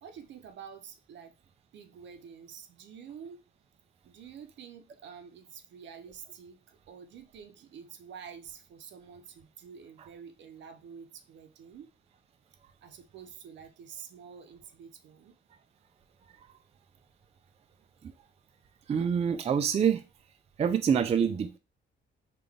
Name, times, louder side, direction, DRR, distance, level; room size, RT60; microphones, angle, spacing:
voice 1, 0.0-1.3 1.7-3.4 4.0-11.9 12.8-15.3, right 7 dB, 65° right, 0.6 m, -48 dB
voice 2, 18.9-20.0 20.6-21.6, right 7 dB, 30° right, 0.3 m, -26 dB
3.7 x 2.4 x 3.4 m
cardioid pair, 90°, 20 cm